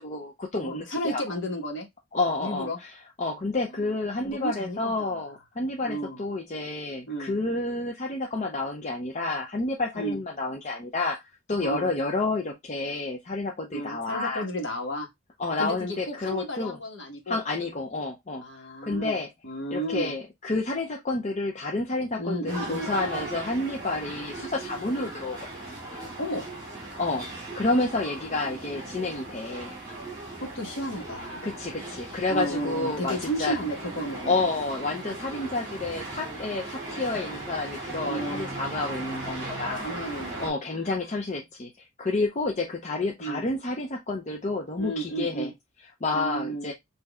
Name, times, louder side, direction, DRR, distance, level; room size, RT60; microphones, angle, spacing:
voice 1, 0.0-1.2 2.1-2.9 3.2-11.2 11.5-14.4 15.4-16.8 17.3-18.4 18.8-19.3 19.7-25.7 27.0-27.3 27.6-29.8 31.4-33.6 34.3-40.1 40.4-45.5 46.0-46.7, left 2 dB, 35° left, 0.5 m, -30 dB
voice 2, 0.5-1.9 2.4-2.8 3.7-3.9 4.2-5.1 5.8-6.2 7.1-7.4 9.9-10.2 11.6-11.9 13.7-15.1 15.6-17.4 18.4-19.2 19.4-20.2 22.2-22.9 24.9-25.1 26.2-26.5 30.4-31.5 32.3-34.4 38.0-38.5 39.2-39.3 39.8-41.0 43.2-43.5 44.8-45.5 46.1-46.7, right 1 dB, 55° left, 1.4 m, -33 dB
sound 1, 22.5-40.5, right 2 dB, 15° right, 2.5 m, -38 dB
6.0 x 2.7 x 2.3 m
head